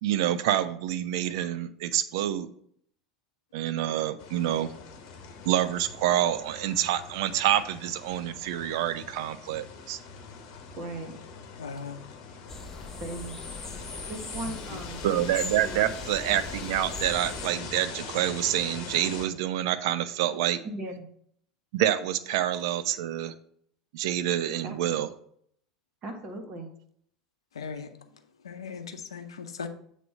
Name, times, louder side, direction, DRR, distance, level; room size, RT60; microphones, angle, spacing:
voice 1, 0.0-2.5 3.5-4.7 5.5-10.0 15.0-20.6 21.7-23.3 23.9-25.1, right 12 dB, 60° right, 0.5 m, -27 dB
sound 1, 4.2-19.3, left 5 dB, 50° left, 0.9 m, -43 dB
voice 2, 10.8-11.1 13.0-13.4 14.1-15.0 15.6-16.0 20.6-21.1 24.6-24.7 26.0-26.7, right 2 dB, 40° right, 1.4 m, -37 dB
voice 3, 11.6-12.0 14.3-14.8 27.5-27.9 28.4-29.7, left 5 dB, 75° left, 0.6 m, -39 dB
sound 2, 12.5-17.5, left 3 dB, 15° left, 0.6 m, -40 dB
7.6 x 3.3 x 5.4 m
figure-of-eight pair, 75°, 3 cm